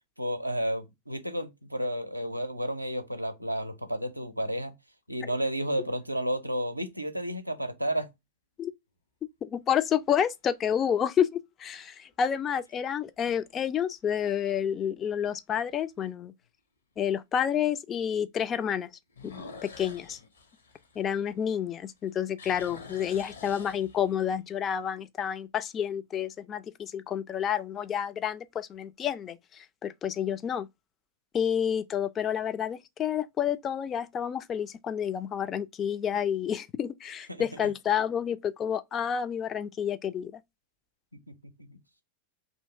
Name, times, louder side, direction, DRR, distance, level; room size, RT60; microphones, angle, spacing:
voice 1, 0.2-4.7 5.1-8.1 37.3-37.4 41.1-41.3 41.7-41.8, equal, 90° right, 0.5 m, -32 dB
sound 1, 5.5-6.1 6.8-6.9 12.1-12.6 13.1-13.2 13.7-13.8 14.1-14.2 15.7-15.8 19.1-21.6 22.0-24.3, left 4 dB, 70° left, 0.8 m, -47 dB
voice 2, 9.4-16.3 17.0-18.9 19.2-19.3 19.6-20.2 21.0-30.7 31.3-40.4, left 8 dB, 25° left, 0.3 m, -29 dB
2.7 x 2.7 x 4.2 m
figure-of-eight pair, 90°, 0 cm